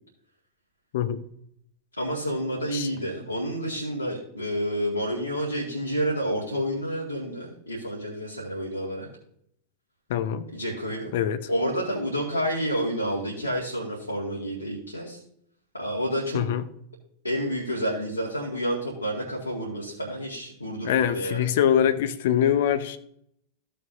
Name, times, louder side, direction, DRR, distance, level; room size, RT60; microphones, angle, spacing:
voice 1, 2.0-9.1 10.5-11.1 11.5-15.2 15.7-16.4 17.2-21.5, equal, 90° left, 2.1 m, -29 dB
voice 2, 10.1-10.5 11.1-11.5 16.3-16.6 20.8-23.0, left 9 dB, 55° left, 0.6 m, -23 dB
15.0 x 6.7 x 2.7 m
figure-of-eight pair, 90°, 0 cm